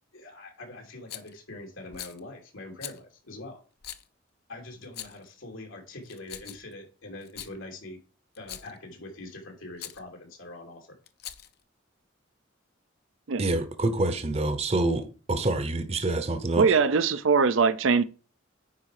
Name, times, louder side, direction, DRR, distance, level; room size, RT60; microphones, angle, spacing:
voice 1, 0.1-3.6 4.5-8.0 8.4-10.9, left 2 dB, 85° left, 3.0 m, -43 dB
Rattle, 1.1-1.4 1.9-2.2 2.8-3.0 3.8-4.1 4.8-5.3 6.0-6.7 7.2-7.5 8.3-8.8 9.8-10.0 11.1-11.6, left 11 dB, 50° left, 0.7 m, -41 dB
voice 2, 13.4-16.7, right 2 dB, 30° right, 0.8 m, -27 dB
voice 3, 16.6-18.0, right 5 dB, 70° right, 0.6 m, -21 dB
9.6 x 4.8 x 4.8 m
head